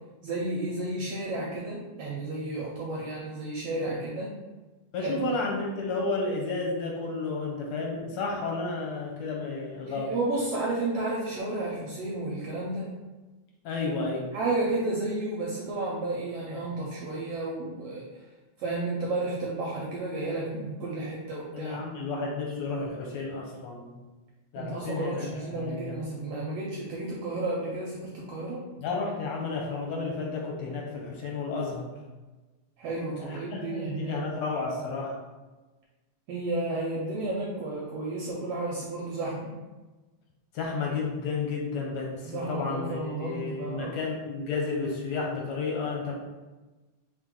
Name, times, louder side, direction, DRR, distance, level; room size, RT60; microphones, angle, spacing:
voice 1, 0.2-4.3 5.0-5.1 9.9-12.9 14.3-18.0 18.6-21.8 24.6-28.6 32.8-34.2 36.3-39.5 42.2-43.9, right 2 dB, 80° right, -3 dB, 1.4 m, -32 dB
voice 2, 4.9-10.1 13.6-14.3 21.5-23.9 24.5-26.0 28.8-31.9 33.2-35.2 40.5-46.1, left 3 dB, 75° left, -1 dB, 1.8 m, -32 dB
4.3 x 3.3 x 3.7 m, 1.2 s
omnidirectional pair, 3.4 m